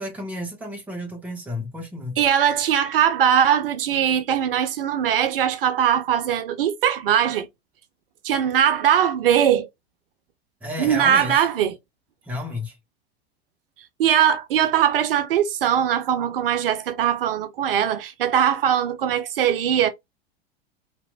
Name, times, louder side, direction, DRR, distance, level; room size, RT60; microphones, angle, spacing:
voice 1, 0.0-2.2 10.6-11.5 12.2-12.8, left 1 dB, 5° right, 0.6 m, -32 dB
voice 2, 2.2-7.5 8.2-9.7 10.8-11.7 14.0-19.9, right 9 dB, 60° right, 0.5 m, -20 dB
2.9 x 2.0 x 2.3 m
figure-of-eight pair, 85°, 31 cm